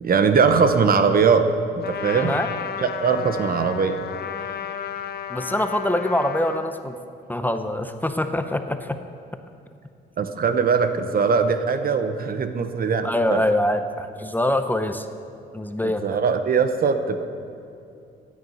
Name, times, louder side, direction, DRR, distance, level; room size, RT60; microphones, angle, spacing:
voice 1, 0.0-2.3 2.8-4.0 10.2-13.4 15.8-17.3, right 5 dB, 50° right, 9 dB, 1.0 m, -21 dB
Trumpet, 1.8-6.7, left 8 dB, 55° left, 0.8 m, -33 dB
voice 2, 2.2-2.5 5.3-6.9 7.3-9.0 13.0-15.1 15.5-16.0, left 1 dB, 10° left, 8 dB, 0.7 m, -24 dB
16.0 x 9.6 x 5.6 m, 2.7 s
cardioid pair, 90°, 20 cm